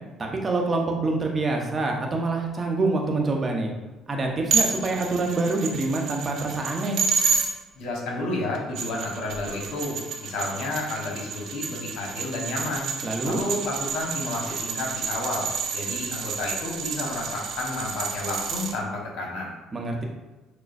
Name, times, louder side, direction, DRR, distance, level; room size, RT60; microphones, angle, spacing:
voice 1, 0.2-3.7 4.1-7.0 13.0-13.4 19.7-20.0, right 3 dB, 35° right, 1 dB, 0.8 m, -26 dB
sound 1, 4.5-7.5 8.5-18.7, right 5 dB, 65° right, 0.5 m, -30 dB
voice 2, 7.8-12.9 13.2-15.5 15.7-19.5, left 2 dB, 70° left, -2 dB, 1.1 m, -31 dB
6.2 x 2.2 x 2.6 m, 1.2 s
hypercardioid pair, 65°, 0 cm